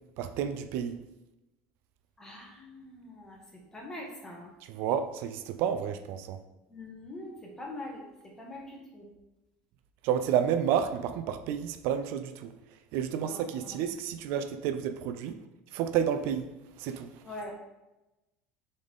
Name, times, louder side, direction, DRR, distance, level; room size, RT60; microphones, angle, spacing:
voice 1, 0.2-1.0 4.7-6.4 10.0-12.5 12.9-15.4 15.7-16.5 16.8-17.1, right 8 dB, 65° right, 9 dB, 0.5 m, -30 dB
voice 2, 2.2-4.5 6.7-9.1 13.2-13.8 17.2-17.5, left 1 dB, 15° left, -2 dB, 1.8 m, -44 dB
7.0 x 4.0 x 3.6 m, 0.98 s
supercardioid pair, 125°, 4 cm